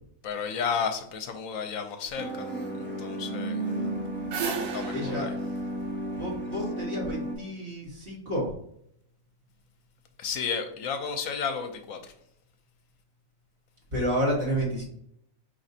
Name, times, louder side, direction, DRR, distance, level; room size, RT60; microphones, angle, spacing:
voice 1, 0.2-2.3 3.0-3.6 4.4-5.3 10.2-12.0, left 6 dB, 80° left, 6 dB, 1.0 m, -32 dB
sound 1, 2.1-7.3, right 1 dB, 10° left, 0.9 m, -33 dB
sound 2, 3.8-7.0, right 6 dB, 85° right, 1.2 m, -36 dB
voice 2, 4.9-5.3 6.2-8.5 13.9-14.8, equal, 45° right, -4 dB, 1.4 m, -30 dB
5.0 x 3.1 x 2.7 m, 0.70 s
omnidirectional pair, 1.4 m